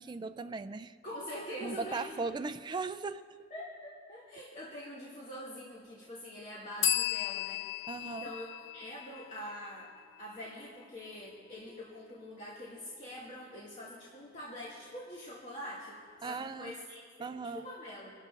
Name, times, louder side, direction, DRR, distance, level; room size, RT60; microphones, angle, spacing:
voice 1, 0.0-1.0 1.6-3.2 7.9-8.3 16.2-16.7 17.2-17.7, right 4 dB, 25° right, 10 dB, 0.3 m, -38 dB
voice 2, 1.0-2.2 3.5-8.5 8.7-9.9 10.2-18.1, equal, 40° left, -7 dB, 2.2 m, -45 dB
sound 1, 6.8-10.4, left 12 dB, 85° left, 0.5 m, -35 dB
27.0 x 12.0 x 2.5 m, 2.1 s
head